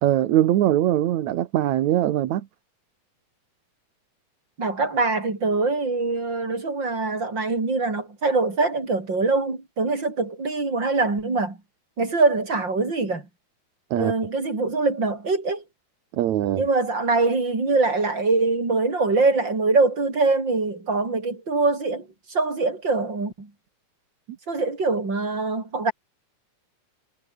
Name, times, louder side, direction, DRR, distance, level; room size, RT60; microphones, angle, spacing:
voice 1, 0.0-2.5 13.9-14.1 16.1-16.7, right 12 dB, 70° right, 2.5 m, -21 dB
voice 2, 4.6-11.6 12.0-13.2 13.9-15.6 16.5-23.5 24.5-25.9, right 3 dB, 35° right, 6.0 m, -23 dB
omnidirectional pair, 3.6 m